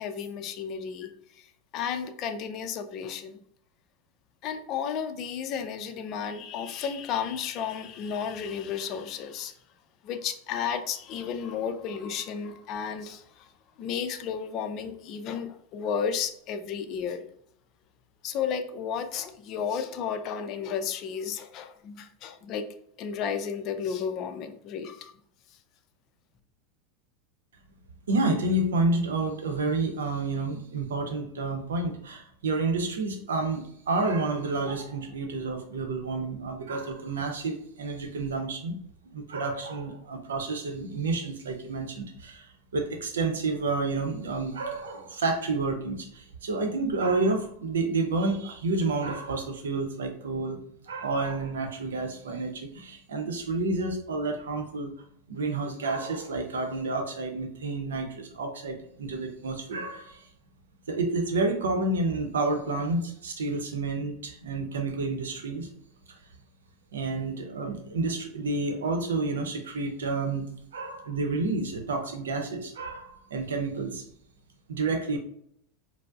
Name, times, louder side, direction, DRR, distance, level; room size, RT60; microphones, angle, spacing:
voice 1, 0.0-3.4 4.4-9.5 10.0-13.5 13.8-17.3 18.2-22.7 23.0-25.1, left 7 dB, 45° left, 8 dB, 0.4 m, -33 dB
voice 2, 28.1-38.7 39.1-50.6 50.9-54.9 55.3-60.3 60.9-65.7 66.9-70.5 70.7-74.1 74.7-75.2, right 3 dB, 80° right, 5 dB, 0.7 m, -30 dB
4.4 x 2.0 x 2.4 m, 0.67 s
hypercardioid pair, 90°, 0 cm